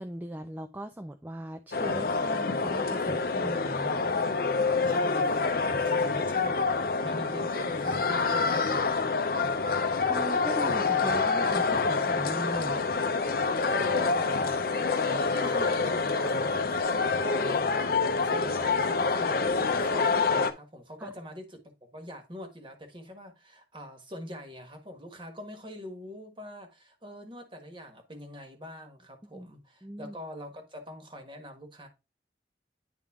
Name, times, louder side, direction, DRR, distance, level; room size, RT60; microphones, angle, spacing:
voice 1, 0.0-4.1 9.8-12.8 21.0-21.1 29.3-29.5 29.8-30.2, right 1 dB, 10° right, 0.4 m, -39 dB
sound 1, 1.7-20.5, left 4 dB, 55° left, 0.6 m, -27 dB
voice 2, 4.8-6.7 7.0-9.2 13.7-14.5 15.0-17.9 18.2-31.9, left 1 dB, 25° right, 1.4 m, -43 dB
9.8 x 3.6 x 3.6 m
head